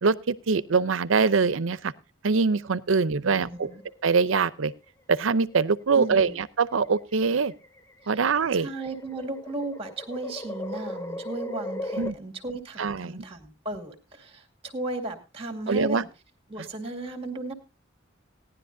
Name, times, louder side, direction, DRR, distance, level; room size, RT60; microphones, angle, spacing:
voice 1, 0.0-1.9 2.2-3.7 4.0-4.7 5.1-7.5 8.1-8.7 12.0-12.1 12.8-13.2 15.7-16.0, right 4 dB, 85° right, 17 dB, 0.6 m, -23 dB
voice 2, 3.0-3.8 5.9-6.4 8.5-16.1 16.5-17.5, right 2 dB, 30° right, 4 dB, 2.2 m, -35 dB
sound 1, 3.5-4.3 5.5-5.9 6.8-12.1, left 1 dB, 15° left, 0.6 m, -38 dB
18.0 x 10.5 x 2.6 m, 0.29 s
head